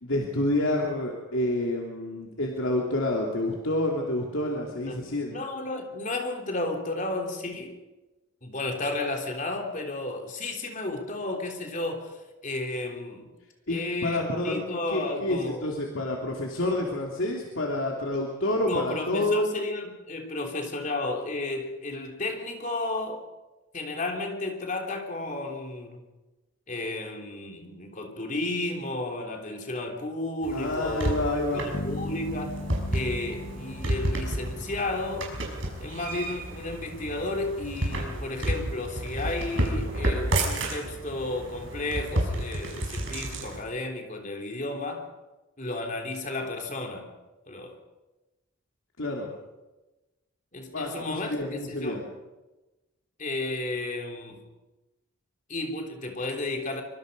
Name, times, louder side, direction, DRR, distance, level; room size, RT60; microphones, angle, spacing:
voice 1, 0.0-5.3 13.7-14.6 14.9-19.5 30.5-31.7 49.0-49.3 50.7-52.0, left 1 dB, 75° left, -1 dB, 3.0 m, -28 dB
voice 2, 5.3-7.8 8.4-13.3 13.7-15.7 18.6-23.2 23.7-26.1 26.7-31.3 31.5-32.6 32.9-35.3 35.8-45.1 45.6-47.1 47.5-47.8 50.5-52.1 53.2-54.4 55.5-56.8, left 2 dB, 40° left, 2 dB, 3.3 m, -33 dB
sound 1, 30.4-43.6, right 1 dB, 65° right, 6.0 m, -31 dB
sound 2, 31.7-35.7, left 2 dB, 55° left, 0.8 m, -38 dB
24.5 x 24.5 x 5.4 m, 1.1 s
head